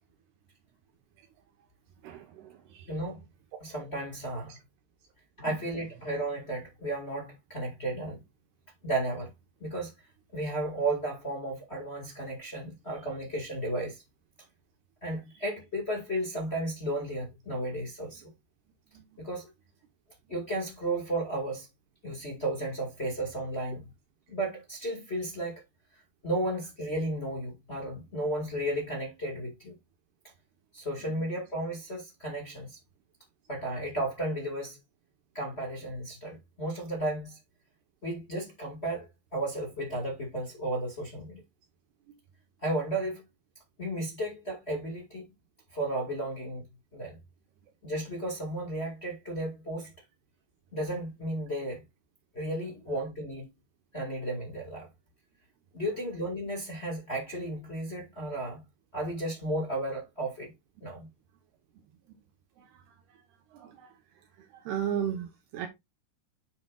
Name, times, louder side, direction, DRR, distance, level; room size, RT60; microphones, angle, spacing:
voice 1, 2.0-2.9 4.5-4.6 18.9-19.0 62.7-62.8 63.5-63.9 64.7-65.7, right 9 dB, 75° right, 3.0 m, -35 dB
voice 2, 2.9-3.2 3.6-4.6 5.4-8.2 8.8-9.3 9.6-9.9 10.3-14.0 15.0-18.2 19.2-19.5 20.3-21.7 22.0-23.8 24.3-25.6 26.2-29.7 30.7-32.8 33.5-34.8 35.3-37.4 38.0-39.1 39.3-41.4 42.6-43.2 43.8-45.2 45.7-46.6 46.9-47.2 47.8-49.9 50.7-51.8 52.3-53.5 53.9-54.9 55.7-58.6 58.9-60.5 60.8-61.1, right 1 dB, 40° left, 0.9 m, -33 dB
8.9 x 6.9 x 2.4 m
omnidirectional pair, 4.9 m